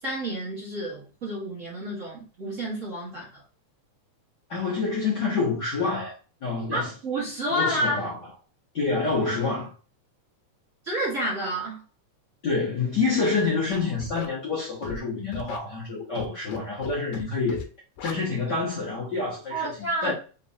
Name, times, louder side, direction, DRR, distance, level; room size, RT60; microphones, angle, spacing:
voice 1, 0.0-3.4 6.7-8.0 10.8-11.8 19.5-20.1, right 1 dB, 50° right, 0.9 m, -29 dB
voice 2, 4.5-6.1 6.4-6.9 7.5-8.2 8.7-9.7 12.4-17.6 18.0-19.7 20.0-20.1, left 4 dB, 60° left, 1.0 m, -27 dB
Scratching (performance technique), 13.7-14.3 14.8-15.0 15.3-15.6 16.2-16.6 16.8-17.2 17.5-17.6 18.0-18.1, left 7 dB, 90° left, 2.0 m, -37 dB
4.4 x 3.1 x 2.7 m
omnidirectional pair, 3.3 m